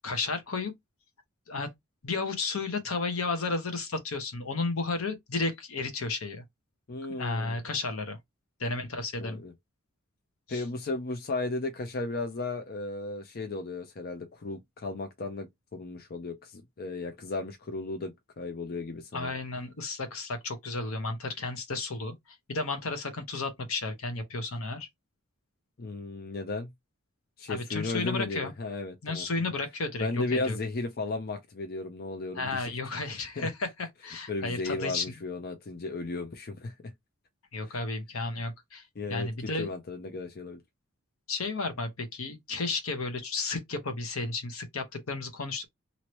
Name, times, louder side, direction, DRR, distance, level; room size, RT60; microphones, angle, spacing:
voice 1, 0.0-0.7 1.5-1.7 2.0-6.4 7.1-8.2 8.6-9.4 10.5-10.6 19.1-22.1 22.5-24.9 27.5-28.5 29.0-30.6 32.3-35.2 37.5-38.8 39.1-39.7 41.3-45.6, left 3 dB, 75° left, 0.9 m, -33 dB
voice 2, 6.9-7.6 9.2-9.5 10.5-19.3 25.8-26.7 27.4-29.2 30.0-32.7 33.4-33.5 34.3-36.7 37.7-37.8 39.0-40.6, left 3 dB, 45° left, 0.5 m, -35 dB
3.0 x 2.7 x 3.0 m
head